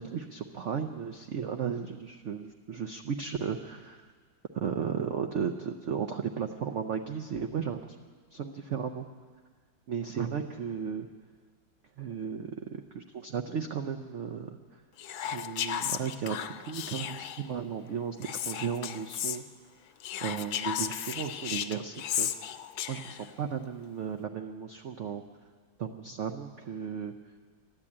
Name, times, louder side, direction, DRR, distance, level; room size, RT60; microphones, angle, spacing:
voice 1, 0.0-4.0 4.5-8.0 8.3-9.1 9.9-11.1 12.0-14.6 15.2-19.4 20.2-22.5 22.9-25.2 25.8-27.2, right 7 dB, 90° right, 6 dB, 0.6 m, -35 dB
Whispering, 15.0-17.5 18.2-19.4 20.0-23.3, left 10 dB, 90° left, 1.3 m, -35 dB
13.5 x 11.0 x 8.6 m, 1.5 s
omnidirectional pair, 2.0 m